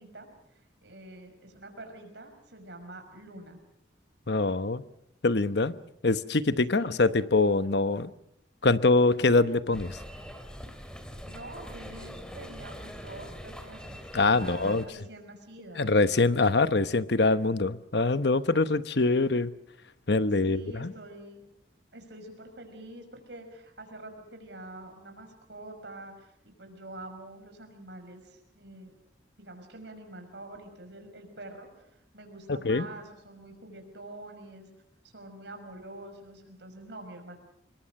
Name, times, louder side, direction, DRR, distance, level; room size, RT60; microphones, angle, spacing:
voice 1, 0.0-3.6 6.7-7.2 11.2-14.0 14.3-15.9 20.5-21.4 21.9-28.9 29.4-34.7 35.0-37.4, right 1 dB, 65° right, 5 dB, 5.8 m, -46 dB
voice 2, 4.3-4.8 5.2-5.7 6.0-8.1 8.6-10.0 14.1-14.8 15.8-19.5 20.1-20.9 32.5-32.8, left 3 dB, 60° left, 13 dB, 1.0 m, -24 dB
sound 1, 9.7-14.9, equal, 5° left, 2.5 m, -43 dB
26.5 x 22.5 x 6.5 m, 0.75 s
head